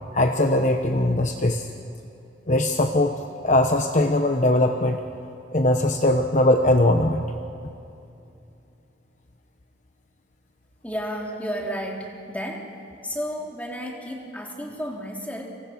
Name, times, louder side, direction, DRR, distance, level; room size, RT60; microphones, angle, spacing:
voice 1, 0.1-1.7 2.5-5.0 5.5-7.2, left 1 dB, 40° left, 5 dB, 1.1 m, -20 dB
voice 2, 10.8-12.7 13.0-15.5, equal, 10° left, -1 dB, 3.5 m, -32 dB
30.0 x 26.5 x 6.1 m, 2.7 s
head